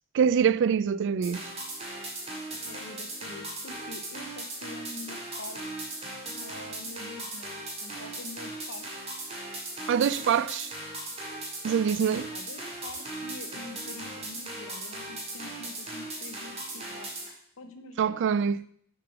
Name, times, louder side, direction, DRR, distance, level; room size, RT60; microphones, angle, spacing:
voice 1, 0.1-1.5 9.9-10.7 11.6-12.3 18.0-18.6, right 7 dB, 60° right, 0.3 m, -24 dB
sound 1, 1.2-17.3, right 1 dB, 30° right, 2.0 m, -38 dB
voice 2, 2.7-8.8 12.0-17.1 17.6-18.3, left 2 dB, 65° left, 0.8 m, -46 dB
7.4 x 5.0 x 5.9 m
head